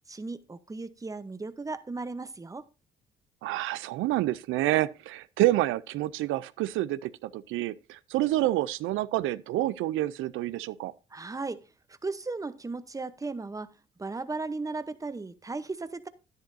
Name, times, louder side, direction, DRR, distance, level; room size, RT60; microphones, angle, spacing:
voice 1, 0.1-2.7 11.1-11.6 11.9-13.7 14.0-16.1, right 3 dB, 15° right, 0.8 m, -36 dB
voice 2, 3.4-10.9, right 15 dB, 90° right, 0.4 m, -28 dB
10.5 x 10.5 x 2.6 m
cardioid pair, 90°, 20 cm